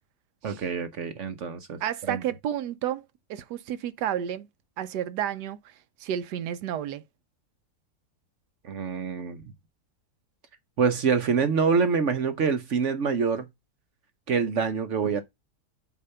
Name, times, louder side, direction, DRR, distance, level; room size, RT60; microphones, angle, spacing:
voice 1, 0.4-1.8 2.1-2.2 8.6-9.4 10.8-13.5 14.3-15.2, right 5 dB, 55° right, 0.9 m, -26 dB
voice 2, 1.8-3.0 3.3-4.5 4.8-5.6 6.0-7.0, right 10 dB, 85° right, 1.2 m, -31 dB
8.2 x 2.8 x 5.6 m
omnidirectional pair, 1.7 m